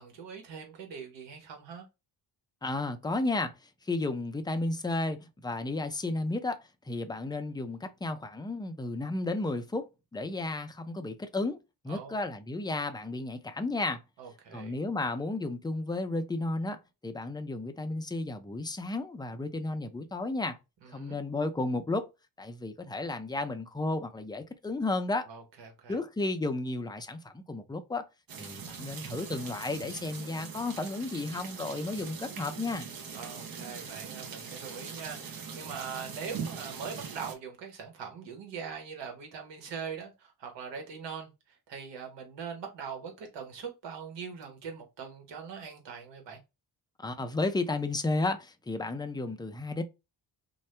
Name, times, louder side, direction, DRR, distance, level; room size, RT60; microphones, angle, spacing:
voice 1, 0.0-1.9 11.9-12.2 14.2-14.8 20.8-21.2 25.3-26.0 33.1-46.4, right 6 dB, 85° right, 1.2 m, -42 dB
voice 2, 2.6-3.5 3.8-9.9 10.1-11.6 11.8-14.0 14.5-20.6 20.9-22.1 22.4-25.3 25.9-28.1 28.4-32.9 47.0-49.8, left 2 dB, 10° left, 0.4 m, -33 dB
sound 1, 28.3-37.4, right 6 dB, 55° right, 0.7 m, -41 dB
2.7 x 2.2 x 3.2 m
cardioid pair, 85°, 42 cm